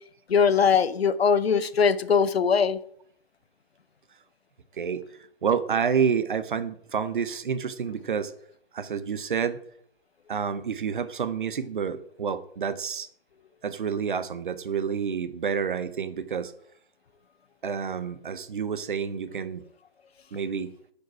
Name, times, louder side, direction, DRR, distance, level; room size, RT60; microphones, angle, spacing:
voice 1, 0.3-2.8, left 6 dB, 80° left, 15 dB, 0.8 m, -21 dB
voice 2, 5.4-8.3 8.7-9.6 10.3-13.1 13.6-16.5 17.6-19.6 20.3-20.7, right 7 dB, 55° right, 13 dB, 0.9 m, -28 dB
10.5 x 5.4 x 4.7 m, 0.64 s
hypercardioid pair, 165°, 31 cm